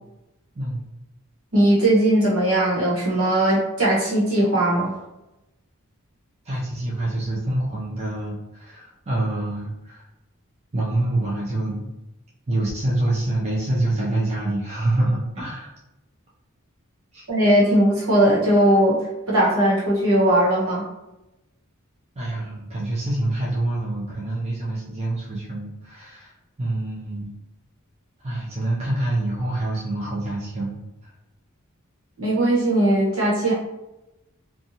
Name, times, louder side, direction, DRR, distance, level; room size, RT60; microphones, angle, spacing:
voice 1, 0.6-0.9 6.5-10.0 10.7-11.9 12.5-15.7 17.1-17.3 22.2-26.3 26.6-27.3 28.2-30.8, right 1 dB, 30° right, -5 dB, 0.5 m, -26 dB
voice 2, 1.5-4.9 17.3-19.0 19.3-20.8 32.2-33.5, right 1 dB, 75° right, -6 dB, 1.1 m, -19 dB
2.6 x 2.3 x 2.7 m, 0.94 s
head